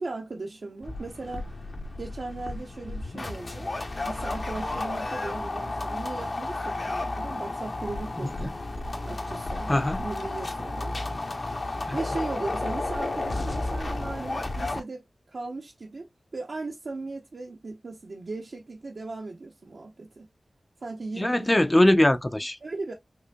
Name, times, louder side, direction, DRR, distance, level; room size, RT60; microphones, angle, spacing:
voice 1, 0.0-1.5 2.0-3.7 4.0-8.5 9.0-10.9 11.9-20.3 20.8-21.5 22.6-22.9, right 3 dB, 70° right, 0.7 m, -37 dB
sound 1, 0.8-14.8, left 2 dB, 55° left, 0.8 m, -32 dB
voice 2, 9.7-10.0 11.9-12.0 21.2-22.6, left 1 dB, 20° left, 0.4 m, -22 dB
4.9 x 2.6 x 2.2 m
wide cardioid pair, 60°, 0 cm